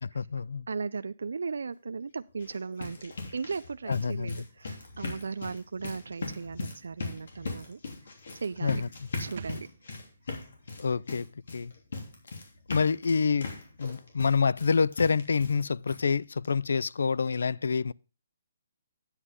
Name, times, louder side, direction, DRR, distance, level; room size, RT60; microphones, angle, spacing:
voice 1, 0.0-0.7 3.9-4.4 8.6-8.9 10.8-11.3 11.5-11.7 12.7-13.5 13.8-17.9, left 5 dB, 80° left, 0.4 m, -27 dB
voice 2, 0.7-7.8 8.4-8.8 9.2-9.7, right 4 dB, 90° right, 0.4 m, -37 dB
sound 1, 2.3-15.6 15.9-16.0 16.4-16.5 16.9-17.0, left 3 dB, 65° left, 3.0 m, -39 dB
sound 2, 9.4-12.9 13.1-13.2, right 6 dB, 50° right, 1.1 m, -51 dB
9.6 x 8.1 x 3.6 m
hypercardioid pair, 175°, 0 cm